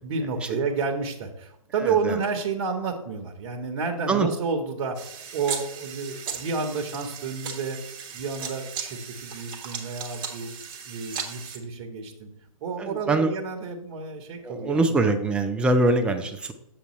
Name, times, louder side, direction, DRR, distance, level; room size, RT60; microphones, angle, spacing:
voice 1, 0.0-5.0 5.3-7.8 8.1-10.5 10.8-12.3 12.6-15.0, right 5 dB, 40° right, 2 dB, 1.2 m, -30 dB
voice 2, 1.8-2.2 4.1-4.3 12.8-13.3 14.4-16.5, right 2 dB, 5° right, 6 dB, 0.4 m, -23 dB
sound 1, 5.0-11.6, right 7 dB, 25° right, 1.2 m, -37 dB
8.1 x 6.9 x 3.1 m, 0.77 s
hypercardioid pair, 140°, 19 cm